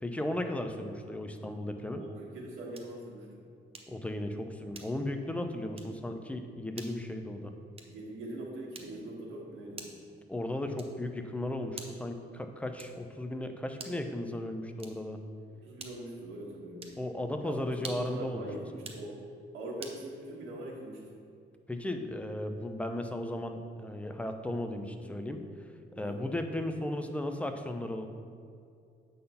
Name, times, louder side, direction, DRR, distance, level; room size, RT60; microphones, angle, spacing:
voice 1, 0.0-2.0 3.9-7.5 10.3-15.2 17.0-18.5 18.7-19.0 21.7-25.4 25.9-28.1, left 1 dB, 5° left, 6 dB, 0.7 m, -35 dB
voice 2, 2.0-3.4 7.8-9.9 15.6-17.0 17.4-19.2 19.5-21.1 26.0-26.2, right 1 dB, 80° right, -3 dB, 1.7 m, -42 dB
sound 1, 2.7-3.0 3.7-4.1 4.7-5.2 5.7-6.0 6.7-7.0 7.7-8.1 8.7-9.1 9.7-10.1 10.7-11.1 11.7-12.1 12.8-13.1 13.7-14.1 14.7-15.2 15.8-16.2 16.8-17.1 17.7-18.2 18.7-19.1 19.8-20.0, right 3 dB, 30° right, 0.9 m, -47 dB
8.2 x 4.0 x 5.6 m, 2.4 s
cardioid pair, 90°, 20 cm